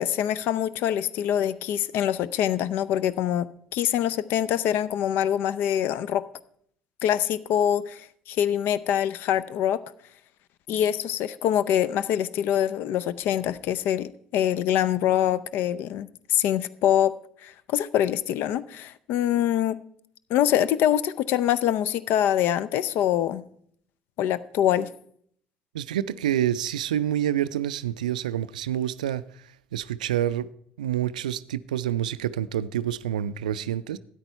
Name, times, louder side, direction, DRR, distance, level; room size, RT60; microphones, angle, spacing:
voice 1, 0.0-6.2 7.0-9.8 10.7-17.2 17.4-19.8 20.3-23.4 24.2-24.9, left 10 dB, 60° left, 0.5 m, -24 dB
voice 2, 25.7-29.2 29.7-30.5 30.8-34.0, right 11 dB, 80° right, 0.3 m, -27 dB
13.0 x 9.4 x 4.4 m
figure-of-eight pair, 55°, 4 cm